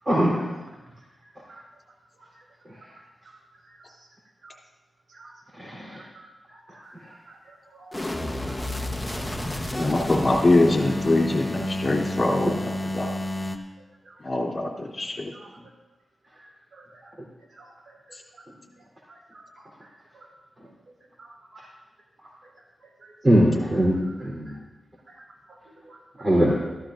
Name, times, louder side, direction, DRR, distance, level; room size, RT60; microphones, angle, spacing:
voice 1, 0.1-0.4 5.6-6.0 12.5-12.6 23.2-24.5 26.2-26.6, equal, 35° right, -5 dB, 3.5 m, -21 dB
voice 2, 1.2-1.6 2.2-2.4 2.7-2.9 3.6-4.1 4.4-4.6 5.1-5.3 5.7-8.1 8.4-8.6 8.8-9.0 9.7-9.9 11.6-11.7 14.0-14.2 15.3-15.5 16.4-17.1 17.5-18.2 18.6-18.7 19.1-20.3 21.2-21.7 22.4-22.5 22.8-23.1 24.0-24.6 25.1-26.0, right 2 dB, 60° right, -2 dB, 4.3 m, -52 dB
sound 1, 7.9-13.6, left 1 dB, 15° left, 1.0 m, -30 dB
voice 3, 9.7-12.5 12.9-13.1 14.2-15.3, left 2 dB, 45° left, 0 dB, 3.0 m, -23 dB
14.5 x 14.0 x 2.6 m, 1.1 s
cardioid pair, 50°, 0 cm